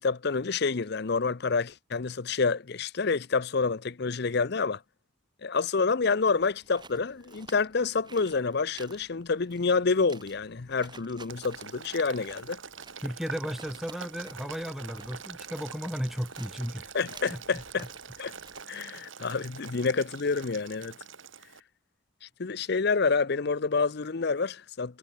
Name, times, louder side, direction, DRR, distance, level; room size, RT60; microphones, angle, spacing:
voice 1, 0.0-4.8 5.4-12.6 16.9-17.9 18.2-18.3 18.7-20.9 22.2-25.0, left 4 dB, 55° left, 0.6 m, -28 dB
sound 1, 6.4-18.6, right 4 dB, 20° right, 3.1 m, -53 dB
Boiling, 11.3-21.6, right 6 dB, 70° right, 3.6 m, -44 dB
voice 2, 13.0-16.9 17.3-17.6, equal, ahead, 0.7 m, -35 dB
head